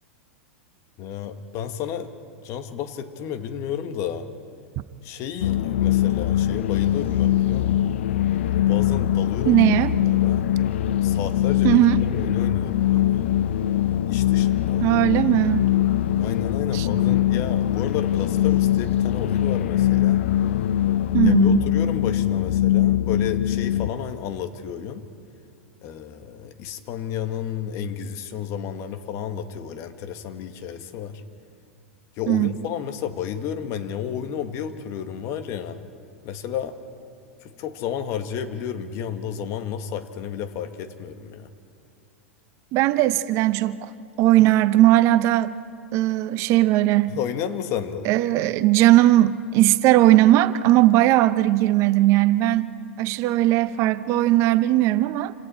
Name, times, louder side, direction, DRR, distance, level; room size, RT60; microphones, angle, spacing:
voice 1, 1.0-2.1 2.4-4.3 5.0-7.9 8.5-9.7 10.1-10.5 11.0-13.4 14.1-14.9 16.2-20.2 21.2-25.0 25.8-31.2 32.2-35.8 36.2-36.8 37.4-41.5 47.1-48.1, left 8 dB, 45° left, 8 dB, 1.7 m, -32 dB
sound 1, 5.4-23.9, left 12 dB, 65° left, 0.7 m, -22 dB
voice 2, 9.4-9.9 11.6-12.0 14.8-15.7 16.7-16.9 21.1-21.6 32.3-32.5 42.7-43.9 44.2-45.5 45.9-47.2 48.0-52.7 53.0-55.3, right 15 dB, 45° right, 14 dB, 0.8 m, -18 dB
28.5 x 26.5 x 4.4 m, 2.4 s
figure-of-eight pair, 95°, 7 cm